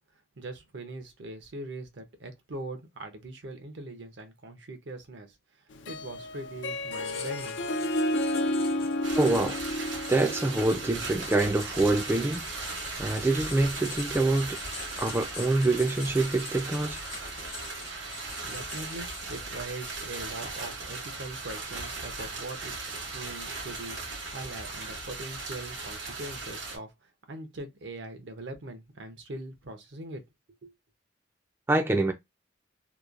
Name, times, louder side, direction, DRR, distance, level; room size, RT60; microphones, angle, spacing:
voice 1, 0.4-5.4 5.9-7.6 18.4-22.7 23.1-24.0 24.3-30.2 30.6-30.7, right 2 dB, 70° right, 0.7 m, -41 dB
Harp, 5.7-11.3, left 1 dB, 75° left, 0.4 m, -31 dB
Writing, 7.0-19.6, left 6 dB, 55° left, 0.9 m, -46 dB
sound 1, 9.0-26.8, right 3 dB, 90° right, 1.1 m, -38 dB
voice 2, 9.1-9.6 10.1-12.5 13.0-14.6 15.0-17.0 31.7-32.1, right 2 dB, 15° right, 0.3 m, -25 dB
2.9 x 2.2 x 2.4 m
head